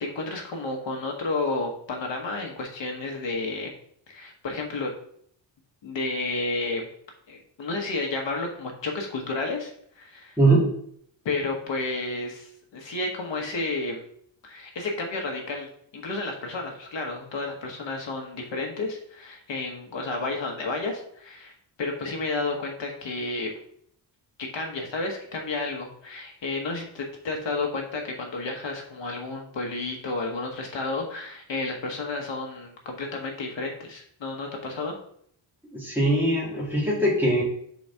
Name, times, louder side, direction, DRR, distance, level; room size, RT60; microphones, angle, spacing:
voice 1, 0.0-3.7 4.1-4.9 5.8-6.9 7.3-10.4 11.2-14.0 14.4-15.7 15.9-21.5 21.8-23.5 24.4-35.0, left 3 dB, 65° left, 2 dB, 1.2 m, -31 dB
voice 2, 10.4-10.7 35.7-37.4, right 1 dB, 5° right, -6 dB, 2.4 m, -21 dB
4.7 x 4.2 x 5.5 m, 0.67 s
wide cardioid pair, 125°, 47 cm